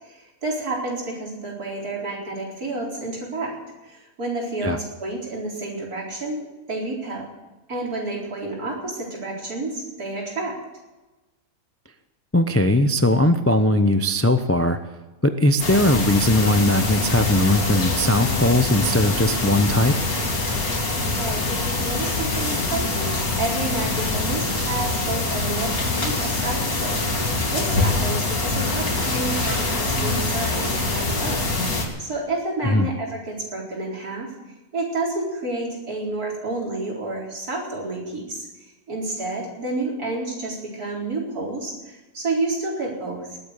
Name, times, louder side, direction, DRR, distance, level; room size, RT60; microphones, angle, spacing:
voice 1, 0.0-3.6 3.8-7.3 7.7-10.6 21.0-34.3 34.7-38.5 38.9-43.4, right 2 dB, 70° right, -2 dB, 4.8 m, -30 dB
voice 2, 12.3-14.8 15.2-19.9 32.7-32.9, left 1 dB, 15° left, 8 dB, 0.5 m, -19 dB
sound 1, 15.6-31.9, left 2 dB, 65° left, 3.1 m, -24 dB
19.5 x 8.6 x 8.2 m, 1.1 s
omnidirectional pair, 1.6 m